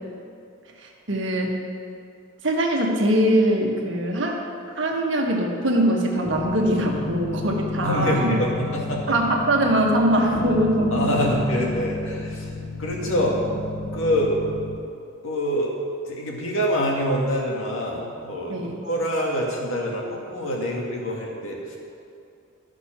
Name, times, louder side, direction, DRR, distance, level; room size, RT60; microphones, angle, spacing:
voice 1, 0.8-1.6 2.4-4.4 4.7-8.3 9.1-11.3 13.1-13.3 18.5-18.8, right 1 dB, 60° right, 0 dB, 1.5 m, -22 dB
sound 1, 6.2-14.8, left 2 dB, 50° left, 0.7 m, -31 dB
voice 2, 7.8-9.1 10.9-13.3 13.9-14.3 15.2-15.7 16.1-21.8, equal, 75° left, -2 dB, 2.0 m, -25 dB
13.0 x 6.0 x 5.9 m, 2.5 s
head